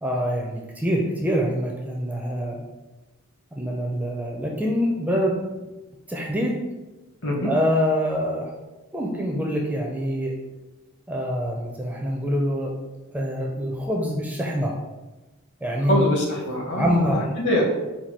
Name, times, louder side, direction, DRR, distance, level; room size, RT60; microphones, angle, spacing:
voice 1, 0.0-2.6 3.5-5.4 6.1-6.6 7.4-8.5 8.9-10.3 11.1-12.7 13.1-14.8 15.6-16.0 16.7-17.3, equal, 5° right, -1 dB, 0.4 m, -25 dB
voice 2, 7.2-7.5 15.9-17.6, left 1 dB, 55° left, -1 dB, 1.0 m, -24 dB
4.2 x 2.2 x 4.6 m, 1.1 s
head